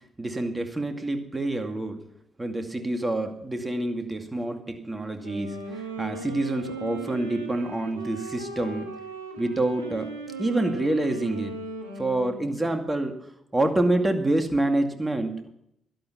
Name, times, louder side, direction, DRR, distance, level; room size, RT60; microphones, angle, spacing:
voice 1, 0.2-2.0 2.4-8.9 9.4-10.1 10.4-11.5 12.0-13.2 13.5-15.5, right 2 dB, 20° right, 6 dB, 2.2 m, -27 dB
Wind instrument woodwind instrument, 5.1-12.8, right 2 dB, 85° right, 1.3 m, -38 dB
11.5 x 11.5 x 5.8 m, 0.76 s
figure-of-eight pair, 40°, 0 cm